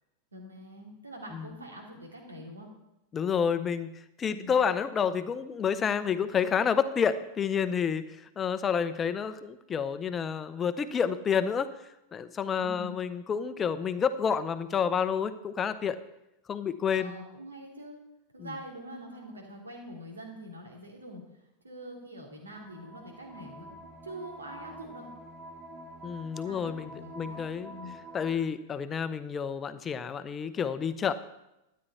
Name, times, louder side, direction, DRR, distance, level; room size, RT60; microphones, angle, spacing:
voice 1, 0.3-2.7 4.3-4.5 12.6-12.9 16.9-18.0 18.3-21.2 21.6-25.1 26.4-28.0, right 1 dB, 75° right, 0 dB, 2.8 m, -44 dB
voice 2, 3.1-11.7 12.1-16.0 16.5-17.1 18.4-18.5 26.0-27.7 28.1-31.1, left 7 dB, 20° left, 12 dB, 0.7 m, -29 dB
sound 1, 22.5-28.4, right 1 dB, 20° right, 2.1 m, -47 dB
12.5 x 9.6 x 4.2 m, 0.91 s
figure-of-eight pair, 90°, 0 cm